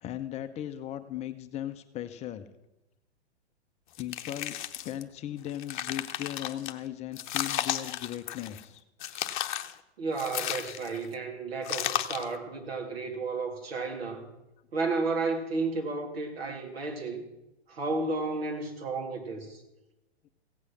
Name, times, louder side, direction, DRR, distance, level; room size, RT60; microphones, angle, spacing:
voice 1, 0.0-2.5 4.0-4.6 4.8-8.8, left 11 dB, 20° left, 10 dB, 0.6 m, -37 dB
sound 1, 3.9-5.0 5.5-6.7 7.2-8.6 9.0-9.7 10.2-11.1 11.6-12.3, left 12 dB, 45° left, 0.8 m, -34 dB
voice 2, 10.0-14.2 14.7-17.2 17.7-19.6, right 3 dB, 65° right, 2 dB, 2.9 m, -32 dB
16.0 x 8.3 x 6.1 m, 0.96 s
figure-of-eight pair, 110°, 33 cm